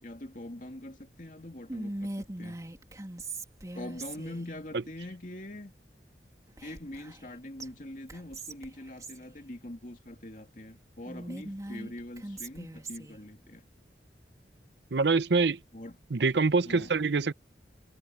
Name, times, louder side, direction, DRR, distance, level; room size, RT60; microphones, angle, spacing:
voice 1, 0.0-2.6 3.7-5.7 6.6-13.6 15.7-16.0 16.6-16.9, left 1 dB, 45° left, 2.5 m, -43 dB
Whispering, 1.7-4.5 6.6-7.3 7.6-7.7 8.1-9.2 11.0-13.2, right 2 dB, 20° right, 2.9 m, -40 dB
voice 2, 14.9-15.6 16.1-17.3, right 4 dB, 75° right, 0.7 m, -25 dB
head